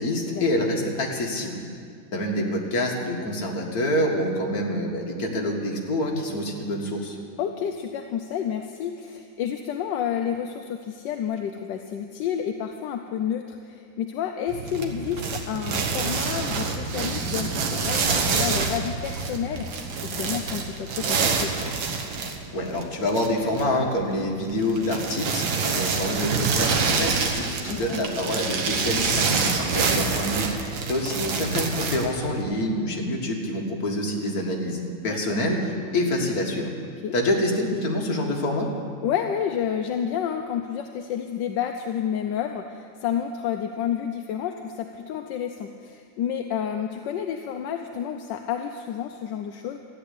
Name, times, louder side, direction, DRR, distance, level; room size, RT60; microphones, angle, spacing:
voice 1, 0.0-1.6 2.1-7.2 22.5-36.7 37.1-38.7, left 1 dB, 50° left, 0 dB, 2.2 m, -26 dB
voice 2, 7.4-21.5 27.7-28.0 35.0-35.4 37.0-37.1 39.0-49.8, left 8 dB, 75° left, 5 dB, 1.3 m, -30 dB
sound 1, 14.5-32.4, right 4 dB, 90° right, 1.9 m, -27 dB
13.5 x 9.8 x 8.4 m, 2.2 s
omnidirectional pair, 2.0 m